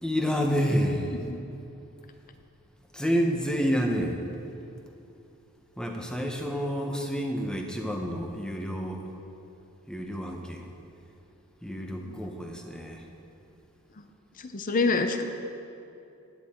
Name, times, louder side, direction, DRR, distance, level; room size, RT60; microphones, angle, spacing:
voice 1, 0.0-1.2 2.9-4.2 5.8-9.2 9.9-10.7 11.6-13.1, equal, 5° left, 2 dB, 0.9 m, -29 dB
voice 2, 14.4-15.2, left 3 dB, 40° left, 7 dB, 0.6 m, -27 dB
13.0 x 9.5 x 4.4 m, 2.7 s
head